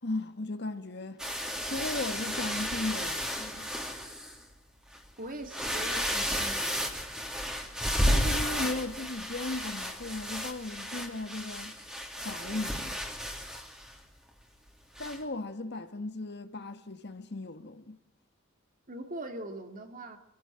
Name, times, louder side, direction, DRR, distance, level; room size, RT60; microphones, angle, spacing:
voice 1, 0.0-1.2 1.7-3.7 8.0-11.7 12.1-13.0 15.0-18.0, left 2 dB, 55° left, 1.6 m, -36 dB
sound 1, 1.2-4.4 4.9-5.0 5.4-14.0 15.0-15.2, equal, 5° right, 3.1 m, -33 dB
voice 2, 5.2-6.9 18.9-20.2, right 1 dB, 40° right, 2.6 m, -41 dB
26.5 x 16.5 x 9.0 m
head